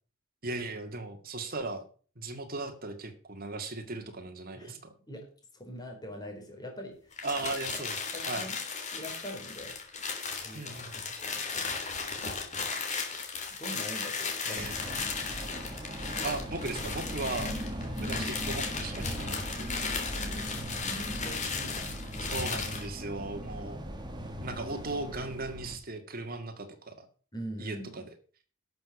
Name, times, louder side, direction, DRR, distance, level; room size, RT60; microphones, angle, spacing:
voice 1, 0.4-1.8 2.2-4.9 7.2-8.0 8.3-8.5 10.5-11.1 14.4-14.8 16.2-17.5 18.0-19.7 22.2-23.8 24.4-27.1 27.6-28.0, right 2 dB, 45° right, 6 dB, 2.2 m, -37 dB
voice 2, 5.5-7.2 7.5-7.8 8.1-8.6 8.9-9.7 10.4-10.7 11.3-11.5 13.6-15.1 17.6-17.7 20.0-21.8 27.3-28.0, equal, 20° left, 2 dB, 4.2 m, -43 dB
sound 1, 7.1-22.9, left 5 dB, 35° left, 3.2 m, -36 dB
sound 2, 14.6-25.8, equal, 20° right, 1.8 m, -39 dB
12.0 x 7.0 x 7.3 m, 0.42 s
head